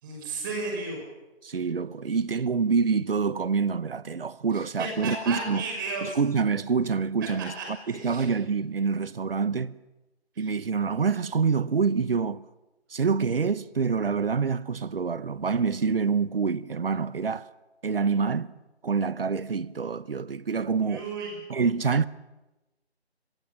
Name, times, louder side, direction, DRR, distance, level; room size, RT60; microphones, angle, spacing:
voice 1, 0.0-1.0 4.5-6.2 7.5-8.3 10.3-10.5 20.8-21.4, right 3 dB, 20° right, 6.2 m, -34 dB
voice 2, 1.4-5.6 6.0-9.8 10.4-12.5 12.9-17.5 17.8-18.5 18.8-21.1 21.5-22.1, right 5 dB, 60° right, 1.0 m, -26 dB
27.0 x 22.5 x 7.3 m
figure-of-eight pair, 165°, 32 cm